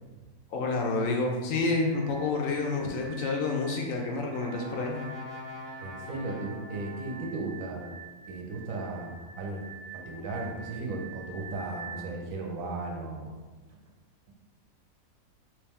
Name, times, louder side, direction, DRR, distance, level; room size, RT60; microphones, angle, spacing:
voice 1, 0.5-5.0, left 3 dB, 70° left, 0 dB, 0.9 m, -29 dB
sound 1, 1.9-12.0, right 6 dB, 35° right, 1.2 m, -47 dB
Brass instrument, 3.5-7.6, left 3 dB, 30° left, 0.7 m, -45 dB
voice 2, 5.8-7.9 8.2-9.6 9.9-13.3, right 2 dB, 70° right, 0 dB, 1.0 m, -36 dB
3.2 x 3.1 x 3.4 m, 1.3 s
omnidirectional pair, 1.5 m